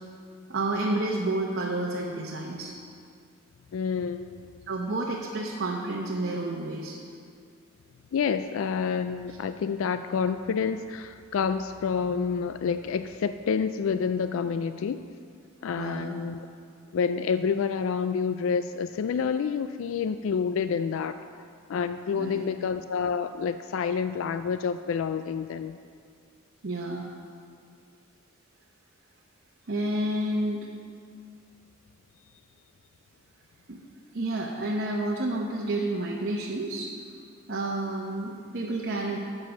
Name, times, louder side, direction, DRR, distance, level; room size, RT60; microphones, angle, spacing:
voice 1, 0.5-2.7 4.7-7.0 15.8-16.2 22.1-22.5 26.6-27.1 29.7-30.7 33.7-33.8 34.1-36.9 37.5-39.2, right 2 dB, 55° right, -2 dB, 0.9 m, -30 dB
voice 2, 3.7-4.4 8.1-15.0 15.6-16.4 16.9-21.2 21.7-25.8, left 6 dB, 65° left, 10 dB, 0.3 m, -28 dB
9.3 x 7.6 x 6.4 m, 2.3 s
head